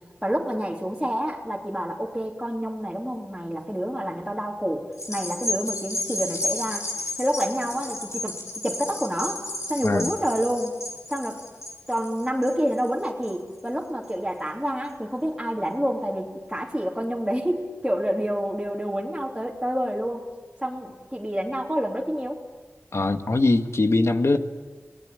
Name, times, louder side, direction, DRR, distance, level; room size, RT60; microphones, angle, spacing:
voice 1, 0.2-6.9 7.2-10.8 11.1-11.4 11.9-20.3 20.6-22.4, equal, 5° right, 3.1 m, -28 dB
sound 1, 4.9-13.6 14.1-14.2, left 1 dB, 80° left, 4.2 m, -33 dB
voice 2, 22.9-24.4, left 2 dB, 65° left, 1.6 m, -21 dB
28.0 x 19.5 x 8.8 m
wide cardioid pair, 45°, 5 cm